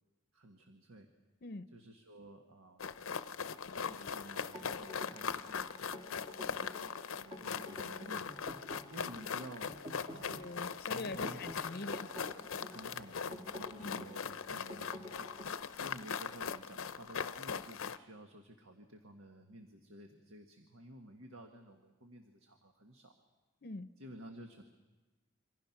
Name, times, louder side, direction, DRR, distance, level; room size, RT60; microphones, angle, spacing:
voice 1, 0.3-1.1 1.7-3.0 3.8-5.7 6.3-8.5 8.9-9.7 10.1-10.6 10.9-11.5 12.7-15.3 15.7-23.2 24.0-24.6, right 1 dB, 85° right, 4 dB, 1.6 m, -53 dB
sound 1, 2.8-18.0, left 6 dB, 85° left, 0.7 m, -40 dB
sound 2, 4.5-15.6, left 1 dB, 35° right, 1.7 m, -50 dB
voice 2, 10.3-12.1 13.8-14.0 23.6-23.9, left 2 dB, 50° left, 12 dB, 0.7 m, -43 dB
27.0 x 24.5 x 5.9 m, 1.2 s
head